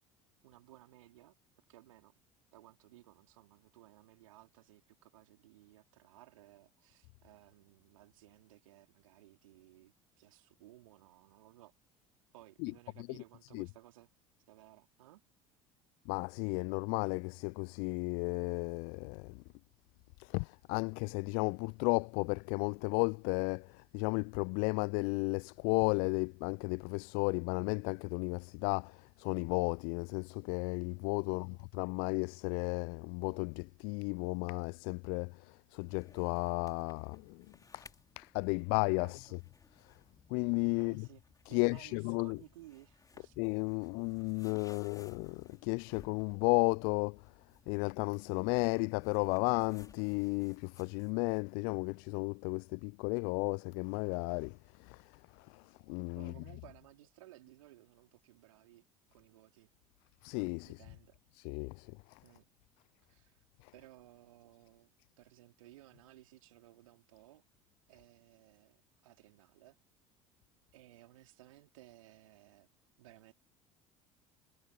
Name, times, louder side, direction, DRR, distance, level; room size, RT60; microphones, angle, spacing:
voice 1, 0.4-1.4 1.7-2.1 2.5-11.7 12.3-14.1 14.5-15.2 31.3-31.6 39.0-39.1 40.7-41.2 41.5-43.4 43.7-43.9 56.2-58.8 59.1-59.7 60.6-61.2 62.2-62.5 63.0-63.4 63.7-67.4 67.9-69.8 70.7-72.7 73.0-73.3, right 16 dB, 70° right, 3.5 m, -59 dB
voice 2, 16.1-19.4 20.2-37.5 37.7-37.9 38.2-39.3 39.8-39.9 40.3-41.0 41.5-42.4 43.4-47.2 47.7-56.3 60.2-60.8 61.4-62.2 63.6-63.7, left 37 dB, 55° left, 0.6 m, -34 dB
sound 1, 35.8-51.2, left 4 dB, 20° left, 3.0 m, -61 dB
figure-of-eight pair, 65°, 18 cm